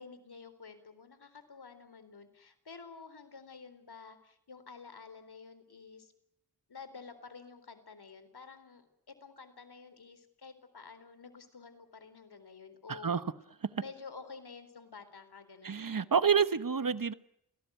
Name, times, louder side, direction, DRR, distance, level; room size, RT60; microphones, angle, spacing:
voice 1, 0.0-6.1 6.7-13.1 13.8-15.9, left 5 dB, 70° left, 11 dB, 4.1 m, -50 dB
voice 2, 12.9-13.2 13.6-13.7 15.6-17.1, right 6 dB, 55° right, 14 dB, 1.3 m, -28 dB
28.5 x 18.0 x 9.4 m, 0.78 s
wide cardioid pair, 65°, 40 cm